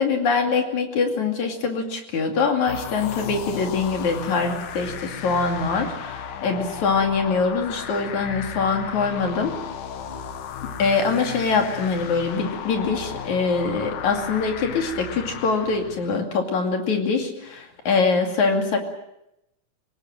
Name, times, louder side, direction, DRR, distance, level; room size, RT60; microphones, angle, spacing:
voice 1, 0.0-9.6 10.8-18.8, left 4 dB, 70° left, 3 dB, 3.9 m, -23 dB
sound 1, 2.7-16.2, left 8 dB, 85° left, 2.9 m, -35 dB
25.0 x 19.0 x 7.7 m, 0.84 s
omnidirectional pair, 3.5 m